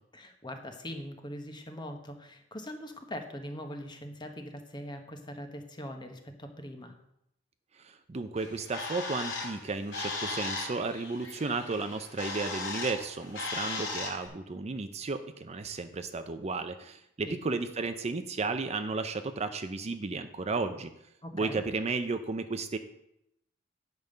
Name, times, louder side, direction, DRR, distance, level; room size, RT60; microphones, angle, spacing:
voice 1, 0.1-6.9 17.3-17.4 21.2-21.6, equal, 25° left, 5 dB, 1.2 m, -42 dB
voice 2, 7.8-20.9 21.3-22.8, right 3 dB, 35° right, 9 dB, 0.5 m, -33 dB
Bird, 8.4-14.3, left 3 dB, 70° left, 2.8 m, -37 dB
9.4 x 5.3 x 6.6 m, 0.80 s
head